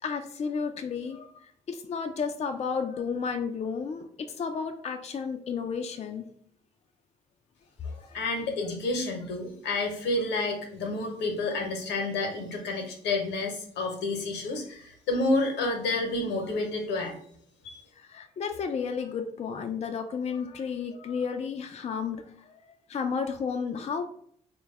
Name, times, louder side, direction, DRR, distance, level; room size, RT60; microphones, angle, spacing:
voice 1, 0.0-6.3 7.9-8.2 17.9-24.0, left 6 dB, 35° left, 6 dB, 0.4 m, -33 dB
voice 2, 7.8-17.1 17.6-17.8, left 2 dB, 75° left, 3 dB, 0.8 m, -30 dB
3.2 x 2.2 x 3.1 m, 0.64 s
hypercardioid pair, 45°, 18 cm